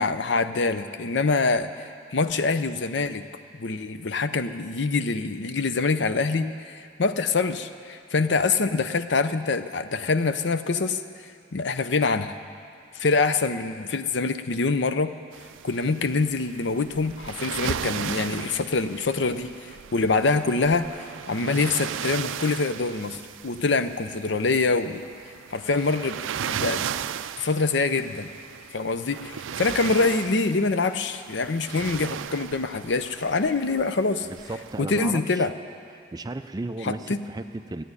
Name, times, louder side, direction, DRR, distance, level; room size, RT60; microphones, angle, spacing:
voice 1, 0.0-3.2 3.6-11.0 11.5-12.4 12.9-15.1 15.6-25.0 25.5-26.2 26.5-26.9 27.4-28.3 28.7-34.3 34.8-35.5 36.8-37.2, left 3 dB, 70° left, 10 dB, 0.6 m, -25 dB
sound 1, 15.3-34.8, right 8 dB, 85° right, 0.4 m, -36 dB
voice 2, 34.2-35.5 36.1-37.8, right 2 dB, 20° right, 10 dB, 0.4 m, -34 dB
14.5 x 9.2 x 9.7 m, 2.4 s
head